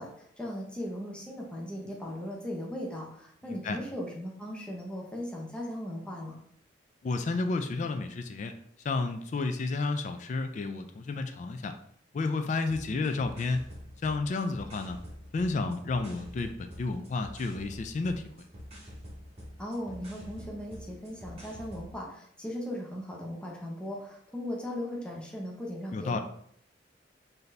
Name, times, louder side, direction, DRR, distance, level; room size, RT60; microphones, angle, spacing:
voice 1, 0.0-6.4 19.6-26.2, equal, 5° left, -2 dB, 0.7 m, -38 dB
voice 2, 7.0-8.6 8.8-11.8 12.1-13.6 14.0-15.0 15.3-18.5 25.9-26.2, left 3 dB, 40° left, 7 dB, 0.3 m, -31 dB
sound 1, 12.6-21.9, equal, 35° right, 1.0 m, -47 dB
4.0 x 2.7 x 3.2 m, 0.67 s
head